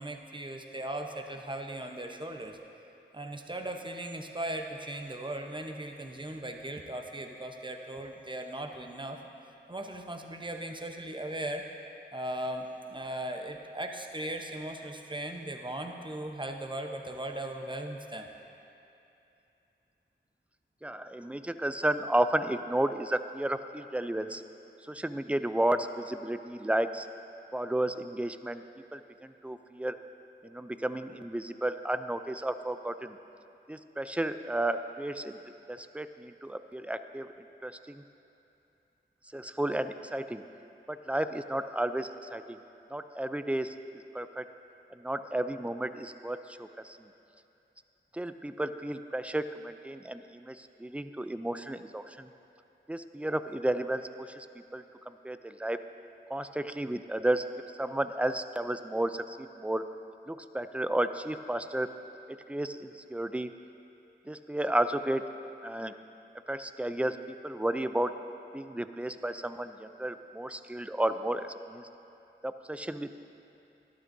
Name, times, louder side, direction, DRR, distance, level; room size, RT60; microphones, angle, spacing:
voice 1, 0.0-2.6 3.1-9.2 9.7-11.6 12.1-18.3, right 1 dB, 25° right, 3 dB, 0.8 m, -38 dB
voice 2, 20.8-24.4 24.9-27.1 27.5-28.6 28.9-30.0 30.4-33.2 33.7-35.4 35.7-37.3 37.6-38.0 39.3-40.4 40.9-42.6 42.9-43.7 44.1-44.5 45.0-47.0 48.1-52.3 52.9-54.5 54.7-55.8 56.3-57.5 57.8-59.8 60.3-61.9 62.5-63.5 64.3-65.2 65.6-65.9 66.5-67.2 67.4-68.1 68.5-71.9 72.4-73.1, right 1 dB, 5° right, 10 dB, 0.4 m, -32 dB
12.0 x 12.0 x 2.7 m, 2.8 s
wide cardioid pair, 40°, 20 cm